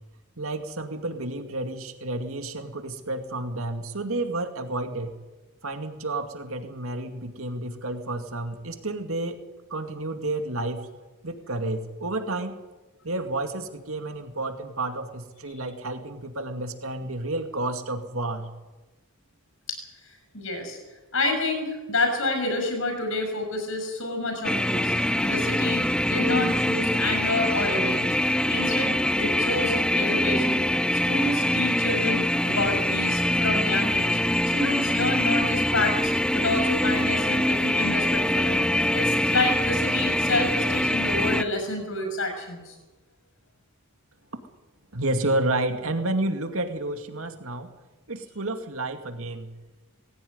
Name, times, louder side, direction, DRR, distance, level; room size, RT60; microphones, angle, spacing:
voice 1, 0.4-5.1 5.6-9.4 9.7-10.9 11.2-12.6 13.0-18.5 44.9-47.7 48.1-49.5, right 2 dB, 70° right, 6 dB, 2.3 m, -30 dB
voice 2, 20.3-20.8 21.1-30.7 31.1-34.2 34.4-38.6 38.9-42.7, left 2 dB, 65° left, 5 dB, 6.7 m, -29 dB
sound 1, 24.4-41.4, left 1 dB, 5° left, 0.7 m, -24 dB
20.0 x 16.5 x 9.6 m, 1.2 s
head